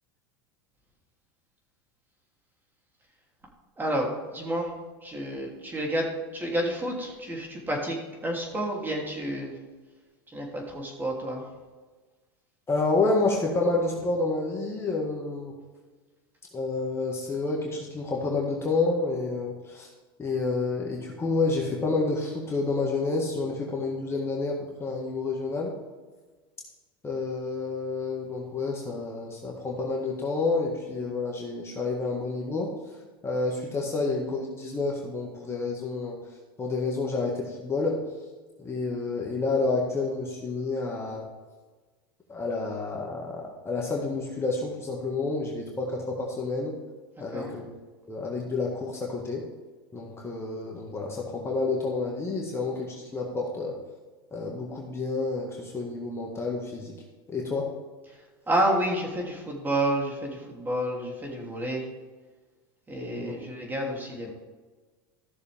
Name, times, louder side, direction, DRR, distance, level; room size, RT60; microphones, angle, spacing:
voice 1, 3.8-4.7 5.0-9.5 10.3-11.4 47.3-47.5 58.5-61.8 62.9-64.3, right 1 dB, 15° right, -1 dB, 3.2 m, -30 dB
voice 2, 12.7-15.5 16.5-19.9 20.2-25.7 27.0-32.7 33.2-36.2 36.6-38.0 38.6-41.2 42.3-46.8 47.2-47.6 48.1-49.4 49.9-53.8 54.3-56.9 57.3-57.7 63.2-63.3, left 3 dB, 20° left, -2 dB, 2.0 m, -29 dB
15.0 x 6.6 x 3.6 m, 1.3 s
hypercardioid pair, 105°, 13 cm